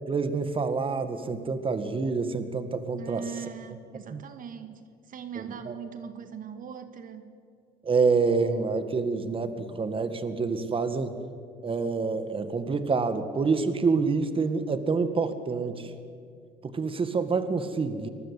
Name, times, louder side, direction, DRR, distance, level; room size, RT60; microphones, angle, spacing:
voice 1, 0.1-3.2 4.1-4.2 5.7-5.8 7.8-11.1 11.6-15.9 16.6-18.1, right 4 dB, 30° right, 10 dB, 2.0 m, -27 dB
voice 2, 3.0-7.3, right 7 dB, 55° right, 9 dB, 1.9 m, -40 dB
25.5 x 21.0 x 8.5 m, 2.2 s
cardioid pair, 110°, 17 cm